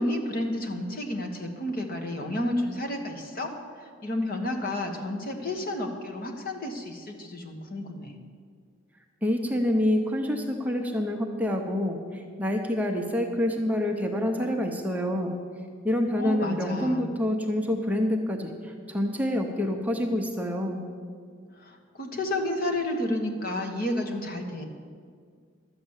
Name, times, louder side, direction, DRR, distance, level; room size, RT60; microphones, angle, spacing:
voice 1, 0.0-3.5 3.8-8.2 16.1-17.1 21.6-24.6, left 1 dB, 45° left, 2 dB, 1.4 m, -31 dB
voice 2, 9.2-15.3 15.8-20.9, left 1 dB, 10° right, 2 dB, 0.8 m, -27 dB
12.0 x 7.9 x 7.3 m, 2.1 s
head